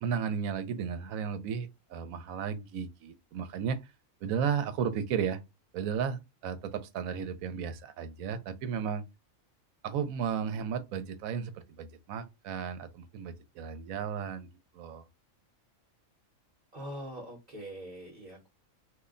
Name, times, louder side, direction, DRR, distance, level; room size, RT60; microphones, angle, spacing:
voice 1, 0.0-3.8 4.2-5.4 5.7-9.0 9.8-14.5 14.7-15.0, right 7 dB, 85° right, 1.0 m, -34 dB
voice 2, 16.7-18.5, equal, 40° right, 0.9 m, -43 dB
2.6 x 2.1 x 3.6 m
omnidirectional pair, 1.4 m